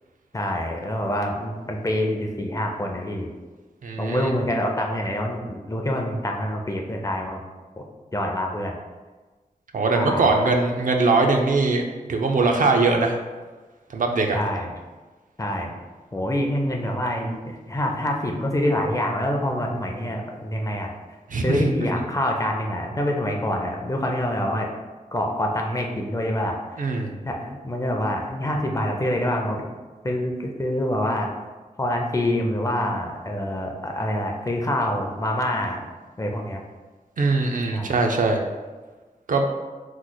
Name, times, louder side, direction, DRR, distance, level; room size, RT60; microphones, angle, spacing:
voice 1, 0.3-3.3 4.0-7.4 7.8-7.9 8.1-8.7 9.9-10.3 14.3-14.7 15.4-15.7 16.1-20.9 21.4-24.7 25.1-26.6 27.2-29.6 30.0-31.3 31.8-35.9 36.2-36.6 37.7-37.9, left 1 dB, 20° left, 1 dB, 0.4 m, -26 dB
voice 2, 3.8-4.3 9.7-13.2 13.9-14.4 21.3-21.6 26.8-27.2 37.2-38.4 39.3-39.5, right 3 dB, 65° right, 2 dB, 0.4 m, -21 dB
3.1 x 2.0 x 3.8 m, 1.3 s
wide cardioid pair, 70°, 15 cm